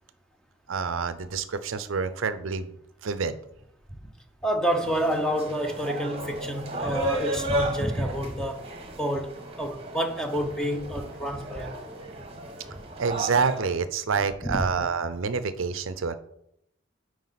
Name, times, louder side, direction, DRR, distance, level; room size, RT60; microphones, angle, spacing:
voice 1, 0.7-2.8 3.0-3.4 13.0-16.1, right 5 dB, 70° right, 0.5 m, -27 dB
voice 2, 4.4-8.7 9.0-9.3 9.6-11.8 14.4-14.6, equal, 5° left, 0.7 m, -28 dB
sound 1, 4.7-13.7, right 1 dB, 30° right, 1.1 m, -34 dB
9.3 x 4.8 x 4.0 m
head